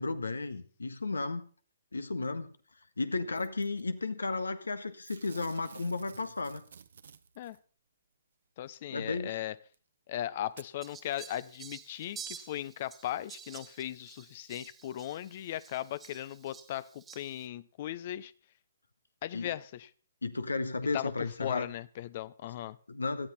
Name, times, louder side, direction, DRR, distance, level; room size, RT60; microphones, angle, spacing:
voice 1, 0.0-1.4 1.9-2.5 3.0-6.6 8.9-9.3 19.3-19.5 20.2-21.7 22.9-23.3, left 3 dB, 85° left, 12 dB, 1.6 m, -33 dB
Packing tape duct tape / Tearing, 3.3-3.8 5.0-7.6 8.7-8.8 9.7-9.8 10.5-10.7 11.4-11.5, right 7 dB, 65° right, 1.1 m, -53 dB
voice 2, 8.6-9.5 10.1-18.3 19.2-19.9 20.9-21.1 21.4-22.8, left 12 dB, 45° left, 19 dB, 0.8 m, -38 dB
Fowl, 10.8-17.5, right 7 dB, 15° right, 1.2 m, -50 dB
17.5 x 13.0 x 4.3 m, 0.41 s
figure-of-eight pair, 130°, 0 cm